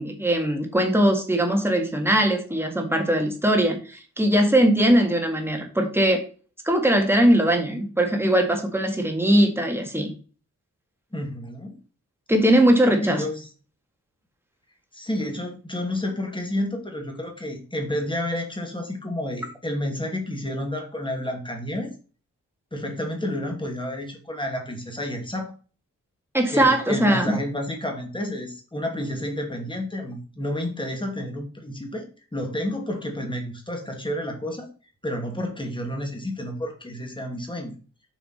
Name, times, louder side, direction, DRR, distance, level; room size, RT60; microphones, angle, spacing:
voice 1, 0.0-6.2 6.6-10.1 12.3-13.2 26.3-27.4, right 1 dB, 5° right, 3 dB, 1.8 m, -20 dB
voice 2, 11.1-11.7 13.0-13.5 14.9-21.9 22.7-25.5 26.5-32.1 32.3-34.7 35.0-37.8, left 1 dB, 15° left, 2 dB, 2.3 m, -30 dB
7.1 x 5.9 x 4.3 m, 0.37 s
wide cardioid pair, 145°, 32 cm